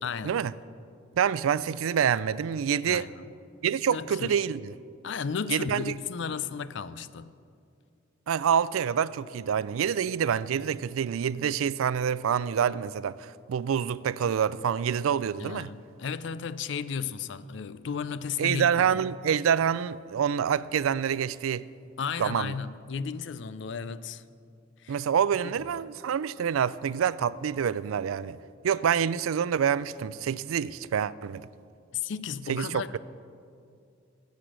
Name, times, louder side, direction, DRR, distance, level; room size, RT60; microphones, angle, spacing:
voice 1, 0.0-0.4 2.9-3.3 3.9-4.4 5.0-7.3 15.4-19.0 22.0-24.2 24.8-25.0 25.4-25.5 31.9-33.0, left 6 dB, 60° left, 0.4 m, -34 dB
voice 2, 1.1-3.1 3.6-4.7 5.5-5.9 8.3-15.7 18.4-21.6 22.2-22.5 24.9-28.4 28.6-31.5 32.5-33.0, right 8 dB, 90° right, 0.4 m, -27 dB
14.5 x 8.3 x 6.2 m
head